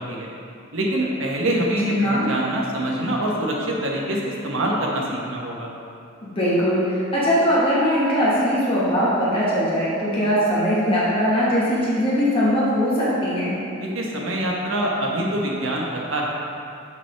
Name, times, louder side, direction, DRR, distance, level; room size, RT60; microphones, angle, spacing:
voice 1, 0.7-5.7 13.8-16.2, right 1 dB, 75° right, -2 dB, 1.0 m, -25 dB
voice 2, 1.8-2.3 6.2-13.6, equal, 30° left, -8 dB, 1.5 m, -21 dB
5.9 x 5.8 x 3.4 m, 2.5 s
head